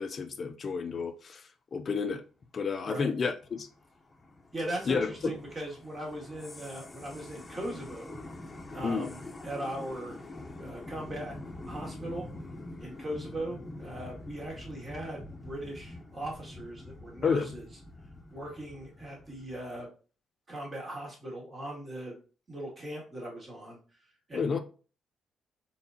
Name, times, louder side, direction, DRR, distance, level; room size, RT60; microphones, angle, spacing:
voice 1, 0.0-2.2 2.5-3.7 4.9-5.3 8.8-9.1 17.2-17.5 24.3-24.6, left 5 dB, 45° left, 0.4 m, -30 dB
sound 1, 3.3-19.8, left 2 dB, 25° left, 0.8 m, -45 dB
voice 2, 4.5-8.2 8.7-10.2 10.6-11.4 11.6-12.3 12.8-17.7 18.3-19.9 20.5-22.2 22.5-23.8 24.3-24.6, right 1 dB, 35° right, 2.2 m, -39 dB
4.2 x 3.8 x 2.8 m
cardioid pair, 90°, 0 cm